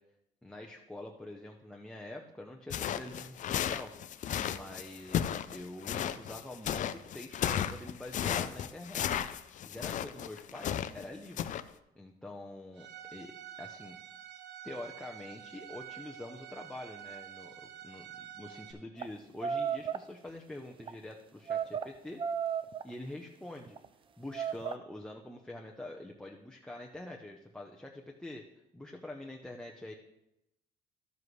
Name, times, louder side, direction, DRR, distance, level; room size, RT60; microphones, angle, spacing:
voice 1, 0.4-3.9 4.5-9.2 9.7-11.6 11.9-14.0 14.6-22.2 22.8-23.8 24.2-28.4 28.7-29.9, left 1 dB, 5° left, 3 dB, 0.7 m, -46 dB
sound 1, 2.7-11.0 11.4-11.6, left 9 dB, 50° left, 0.5 m, -34 dB
Bowed string instrument, 12.8-18.7, right 10 dB, 80° right, 1.1 m, -48 dB
sound 2, 19.0-19.1 19.4-20.0 20.7-20.9 21.5-21.9 22.2-22.9 23.6-23.9 24.3-24.7, right 7 dB, 30° right, 0.4 m, -33 dB
12.5 x 7.5 x 3.2 m, 0.88 s
cardioid pair, 110°, 17 cm